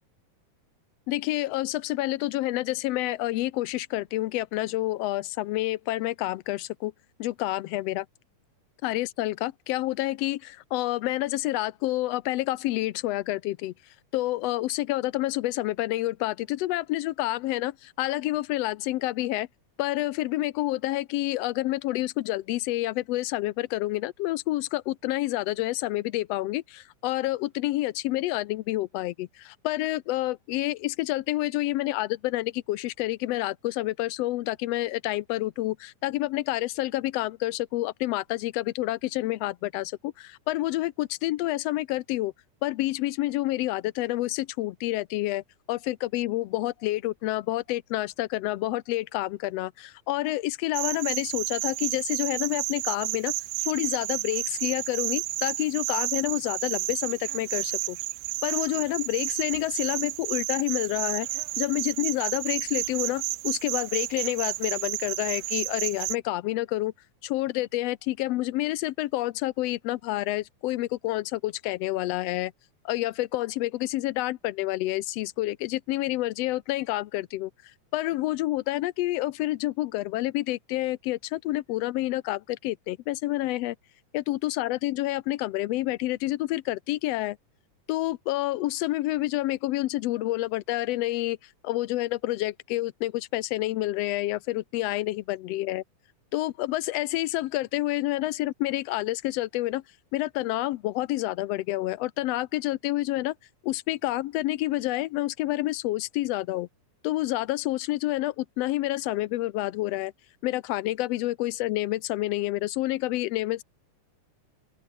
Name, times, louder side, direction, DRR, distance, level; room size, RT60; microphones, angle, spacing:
voice 1, 1.1-6.9 7.2-8.1 8.8-13.7 14.1-19.5 19.8-42.3 42.6-53.3 53.7-58.0 58.4-61.3 61.6-66.9 67.2-72.5 72.8-77.5 77.9-83.7 84.1-87.4 87.9-91.4 91.6-95.8 96.3-99.8 100.1-103.3 103.6-106.7 107.0-110.1 110.4-113.6, left 17 dB, 85° left, 1.4 m, -28 dB
sound 1, 50.7-66.2, right 19 dB, 85° right, 1.5 m, -31 dB
open air
omnidirectional pair, 3.6 m